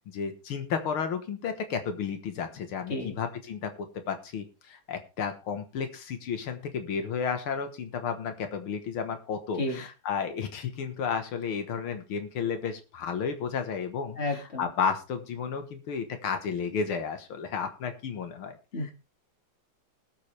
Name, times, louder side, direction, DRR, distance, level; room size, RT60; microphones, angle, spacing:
voice 1, 0.1-18.9, left 6 dB, 85° left, 8 dB, 2.2 m, -32 dB
voice 2, 14.2-14.7 18.7-18.9, left 2 dB, 30° left, 4 dB, 2.5 m, -31 dB
20.0 x 7.6 x 3.3 m, 0.31 s
omnidirectional pair, 2.3 m